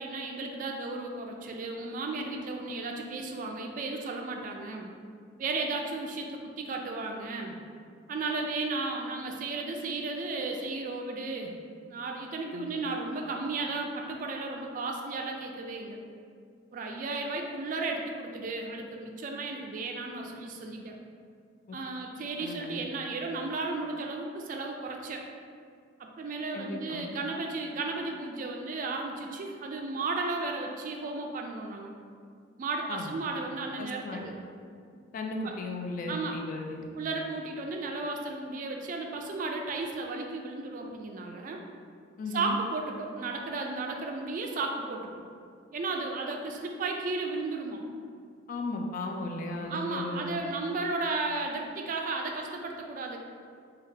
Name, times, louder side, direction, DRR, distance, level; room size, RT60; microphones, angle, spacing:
voice 1, 0.0-4.9 5.4-7.6 8.1-11.5 11.9-16.0 16.7-20.9 21.7-25.2 26.0-31.9 32.6-34.4 35.4-35.5 36.1-36.4 36.9-41.6 42.3-45.1 45.7-47.8 49.7-53.2, right 3 dB, 45° right, 2 dB, 0.3 m, -34 dB
voice 2, 22.4-22.8 26.5-27.1 32.9-33.2 33.8-34.3 35.1-36.9 42.2-42.6 48.5-50.4, left 2 dB, 45° left, 2 dB, 0.3 m, -36 dB
3.2 x 2.3 x 3.2 m, 2.2 s
head